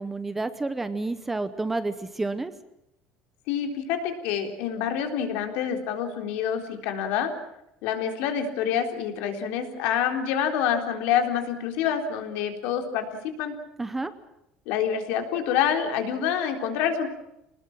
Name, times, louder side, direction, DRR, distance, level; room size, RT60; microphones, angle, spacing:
voice 1, 0.0-2.5 13.8-14.1, right 2 dB, 10° right, 12 dB, 0.9 m, -30 dB
voice 2, 3.5-7.3 7.8-13.1 13.4-13.5 14.7-17.1, left 8 dB, 70° left, 5 dB, 3.9 m, -27 dB
26.5 x 20.0 x 7.4 m, 0.84 s
cardioid pair, 175°, 3 cm